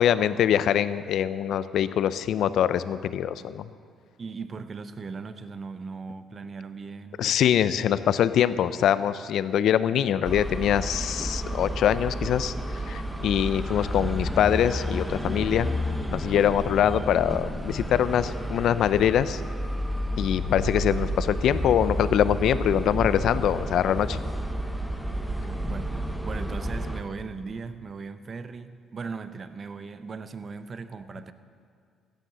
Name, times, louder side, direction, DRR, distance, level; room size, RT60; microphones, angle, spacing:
voice 1, 0.0-3.7 7.2-15.7 16.1-19.4 20.2-24.2, left 10 dB, 70° left, 14 dB, 0.5 m, -24 dB
voice 2, 4.2-7.2 25.4-31.3, right 4 dB, 45° right, 11 dB, 0.8 m, -38 dB
sound 1, 10.2-27.0, equal, ahead, 1.2 m, -31 dB
15.0 x 9.1 x 6.8 m, 2.2 s
supercardioid pair, 70°, 0 cm